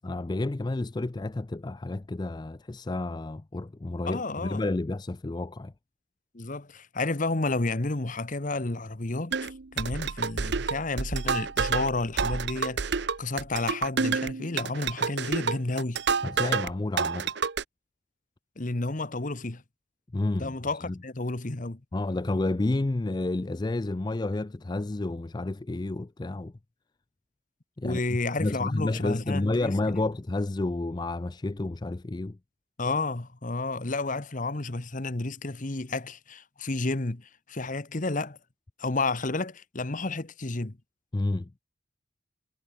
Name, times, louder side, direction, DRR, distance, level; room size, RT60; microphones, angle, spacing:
voice 1, 0.0-5.7 16.2-17.3 20.1-20.6 20.9-21.0 21.9-26.5 27.8-28.0 28.4-32.4 41.1-41.5, left 2 dB, 20° left, 0.4 m, -30 dB
voice 2, 4.1-4.6 6.3-16.0 18.6-19.6 20.4-21.8 27.8-30.0 32.8-38.4 38.8-40.8, left 2 dB, 40° left, 1.2 m, -31 dB
sound 1, 9.3-16.7 17.0-17.6, right 5 dB, 55° right, 0.7 m, -29 dB
head